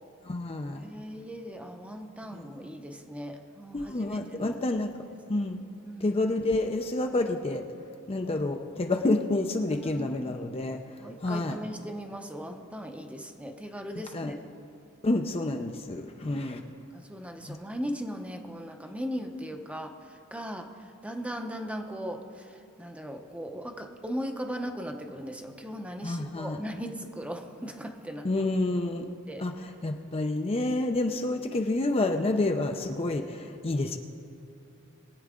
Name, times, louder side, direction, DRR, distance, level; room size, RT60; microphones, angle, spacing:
voice 1, 0.3-0.8 2.3-2.4 3.7-4.9 5.3-5.6 6.0-7.7 8.1-10.8 11.2-11.6 14.1-14.3 15.0-16.6 17.5-17.6 26.0-26.6 28.2-29.0 29.4-29.5 29.8-34.0, left 2 dB, 25° left, 5 dB, 0.5 m, -28 dB
voice 2, 0.8-4.5 5.8-6.2 9.8-10.4 11.0-14.4 16.9-28.3 29.3-29.4, equal, 5° right, 4 dB, 0.7 m, -38 dB
22.0 x 8.7 x 3.7 m, 2.6 s
head